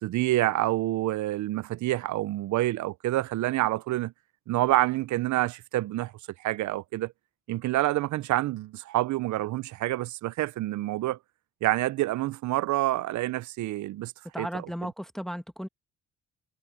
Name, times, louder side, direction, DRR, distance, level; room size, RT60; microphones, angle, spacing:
voice 1, 0.0-4.1 4.5-6.1 6.4-7.1 7.5-11.2 11.6-14.1 14.4-14.5, right 16 dB, 70° right, 0.6 m, -27 dB
voice 2, 14.3-15.7, equal, ahead, 1.4 m, -35 dB
cardioid pair, 90°, 30 cm